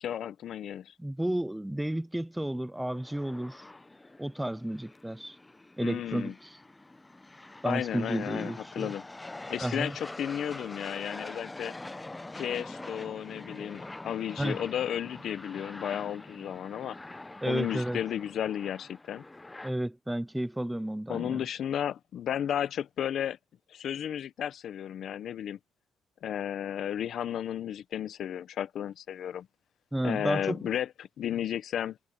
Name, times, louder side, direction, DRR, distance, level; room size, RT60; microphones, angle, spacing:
voice 1, 0.0-0.9 5.8-6.3 7.6-9.0 9.5-11.7 12.3-17.0 17.4-19.2 21.1-23.4 23.7-25.6 26.2-29.5 30.0-32.0, left 10 dB, 65° left, 1.0 m, -33 dB
voice 2, 1.0-3.7 4.2-5.4 5.8-6.6 7.6-8.9 9.6-10.0 14.4-14.6 17.4-18.0 19.6-21.4 29.9-30.7, right 1 dB, 5° right, 0.4 m, -32 dB
sound 1, 2.8-19.7, left 2 dB, 15° left, 0.8 m, -45 dB
cardioid pair, 90°, 0 cm